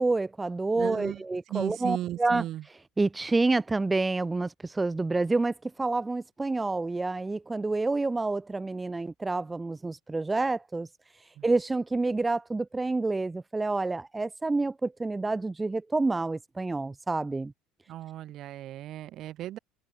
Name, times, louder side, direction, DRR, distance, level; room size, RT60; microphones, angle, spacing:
voice 1, 0.0-10.9 11.4-17.5, right 3 dB, 15° right, 0.4 m, -28 dB
voice 2, 0.7-1.2 1.5-2.6 11.4-11.5 17.9-19.6, right 13 dB, 50° right, 3.1 m, -35 dB
cardioid pair, 125°, 0 cm